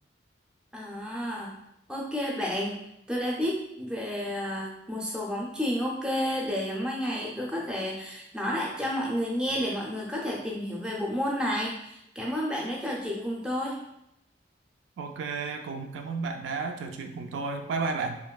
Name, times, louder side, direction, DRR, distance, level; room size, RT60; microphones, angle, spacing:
voice 1, 0.7-1.5 1.9-2.8 3.1-13.8, equal, 5° right, -3 dB, 0.4 m, -31 dB
voice 2, 15.0-18.2, right 4 dB, 85° right, 5 dB, 0.3 m, -32 dB
3.0 x 2.5 x 2.2 m, 0.79 s
head